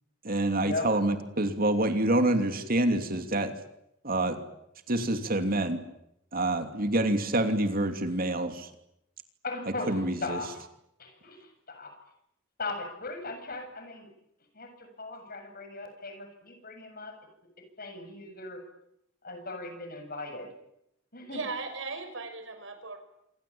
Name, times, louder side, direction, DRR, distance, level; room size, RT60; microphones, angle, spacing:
voice 1, 0.2-3.5 4.0-4.4 4.9-5.8 6.3-8.7 9.9-10.4, right 1 dB, 45° right, 7 dB, 2.9 m, -27 dB
voice 2, 9.4-10.5 11.0-11.9 12.6-14.1 14.5-17.1 17.8-18.6 19.2-20.5 21.1-21.4, left 3 dB, 50° left, 6 dB, 7.4 m, -38 dB
voice 3, 21.3-23.0, right 3 dB, 70° right, 8 dB, 5.9 m, -37 dB
27.0 x 24.5 x 8.7 m, 0.80 s
head